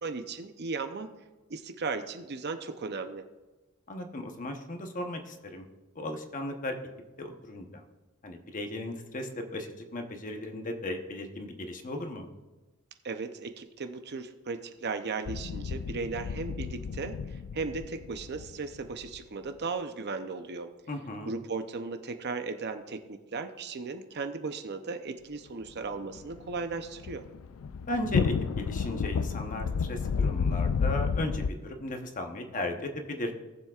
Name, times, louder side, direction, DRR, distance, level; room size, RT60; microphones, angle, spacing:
voice 1, 0.0-1.1 1.5-3.2 13.0-20.7 21.2-27.3, right 4 dB, 50° right, 8 dB, 0.7 m, -36 dB
voice 2, 3.9-5.7 5.9-6.8 7.2-7.8 8.2-12.3 20.9-21.3 27.9-33.3, left 1 dB, 35° left, 4 dB, 1.0 m, -36 dB
sound 1, 15.3-19.2 26.1-31.5, left 5 dB, 70° left, 0.4 m, -31 dB
18.5 x 7.3 x 2.4 m, 1.2 s
head